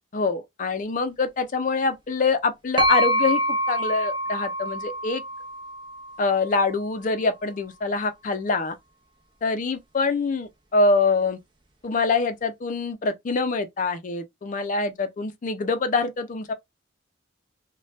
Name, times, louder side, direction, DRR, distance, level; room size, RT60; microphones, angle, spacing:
voice 1, 0.1-5.2 6.2-8.7 9.4-11.4 11.8-16.5, left 3 dB, 45° left, 0.4 m, -25 dB
sound 1, 2.8-6.5, right 1 dB, 25° right, 0.6 m, -26 dB
2.7 x 2.2 x 3.0 m
head